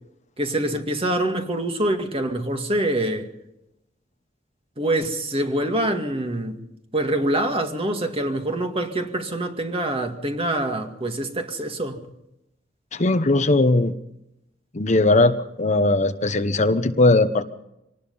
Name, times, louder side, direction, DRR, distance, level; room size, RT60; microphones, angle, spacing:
voice 1, 0.4-3.3 4.8-6.6 6.9-12.0, right 1 dB, 30° right, 2.1 m, -25 dB
voice 2, 12.9-13.9 14.7-17.4, left 2 dB, 40° left, 1.0 m, -19 dB
25.5 x 19.0 x 5.6 m
head